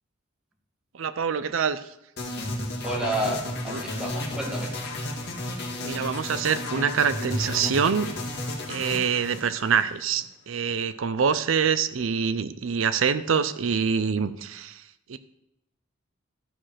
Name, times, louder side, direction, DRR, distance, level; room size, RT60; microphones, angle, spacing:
voice 1, 0.9-1.8 3.7-3.8 5.8-8.1 8.7-14.8 15.1-15.2, right 6 dB, 85° right, 13 dB, 0.5 m, -25 dB
sound 1, 2.2-10.2, left 1 dB, 60° left, 1.8 m, -33 dB
voice 2, 2.8-4.8, right 1 dB, 5° right, -2 dB, 1.9 m, -30 dB
12.5 x 5.0 x 5.7 m, 0.84 s
head